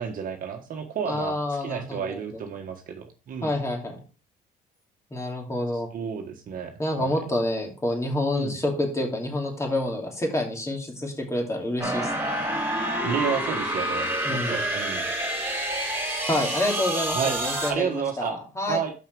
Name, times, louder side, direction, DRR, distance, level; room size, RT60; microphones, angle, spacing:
voice 1, 0.0-3.5 5.7-7.1 8.4-8.6 13.0-15.1 17.1-17.4 17.7-18.4 18.7-18.9, right 7 dB, 55° right, 4 dB, 1.4 m, -31 dB
voice 2, 1.1-2.2 3.4-4.0 5.1-5.9 6.8-12.1 14.2-14.6 16.3-18.8, left 1 dB, 15° left, 1 dB, 2.8 m, -28 dB
sound 1, 11.8-17.7, right 1 dB, 15° right, 3.3 m, -28 dB
6.5 x 5.7 x 4.7 m, 0.34 s
cardioid pair, 110°, 17 cm